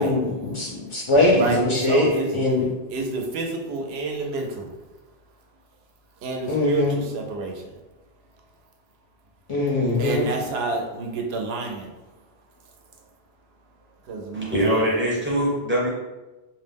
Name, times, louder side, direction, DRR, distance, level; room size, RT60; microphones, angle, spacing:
voice 1, 0.0-2.6 6.5-7.0 9.5-10.3, left 2 dB, 45° left, -4 dB, 0.4 m, -21 dB
voice 2, 1.3-2.4 2.9-4.8 6.2-7.7 10.0-11.9 14.0-14.8, right 3 dB, 75° right, 2 dB, 0.8 m, -29 dB
voice 3, 14.3-15.9, equal, 15° right, -6 dB, 0.5 m, -22 dB
2.4 x 2.0 x 3.3 m, 1.1 s
omnidirectional pair, 1.1 m